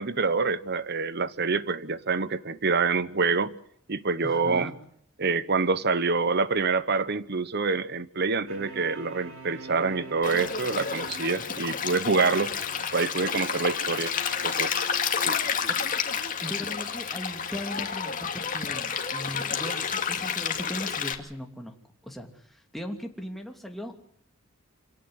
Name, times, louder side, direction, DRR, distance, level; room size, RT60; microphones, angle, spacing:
voice 1, 0.0-3.5 3.9-4.7 5.2-12.5 12.9-14.1 14.4-14.8 15.2-15.4, right 4 dB, 55° right, 1.1 m, -26 dB
voice 2, 4.2-4.7 15.4-15.8 16.4-21.7 22.0-23.9, equal, ahead, 2.8 m, -38 dB
sound 1, 8.5-16.2, right 2 dB, 80° right, 5.9 m, -44 dB
Stream, 10.2-21.1, left 6 dB, 40° left, 2.4 m, -30 dB
26.5 x 17.5 x 8.0 m
head